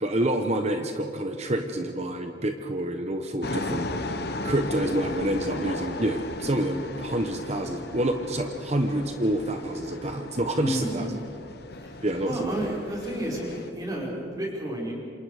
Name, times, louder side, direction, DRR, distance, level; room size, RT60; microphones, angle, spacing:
voice 1, 0.0-4.0 4.4-11.1 12.0-12.7, right 1 dB, 35° right, 5 dB, 1.1 m, -28 dB
sound 1, 3.4-13.7, left 2 dB, 55° left, 1.2 m, -36 dB
voice 2, 10.6-11.2 11.8-14.9, right 1 dB, 20° right, -3 dB, 5.3 m, -32 dB
28.0 x 27.0 x 5.0 m, 2.7 s
head